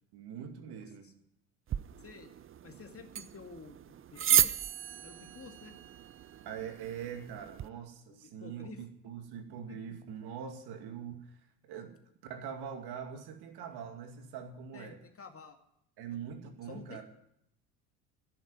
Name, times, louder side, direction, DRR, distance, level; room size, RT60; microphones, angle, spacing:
voice 1, 0.1-1.1 6.4-11.4 11.6-11.9 12.2-15.0 16.0-17.0, right 8 dB, 60° right, 5 dB, 2.5 m, -43 dB
voice 2, 0.6-1.1 2.0-2.3 2.6-4.6 5.0-5.8 8.1-8.8 9.7-10.0 14.7-15.6 16.1-16.2 16.6-17.1, left 5 dB, 30° left, 5 dB, 2.3 m, -51 dB
sound 1, 1.7-7.7, right 10 dB, 30° right, 0.6 m, -34 dB
12.0 x 10.5 x 9.2 m, 0.75 s
hypercardioid pair, 65°, 45 cm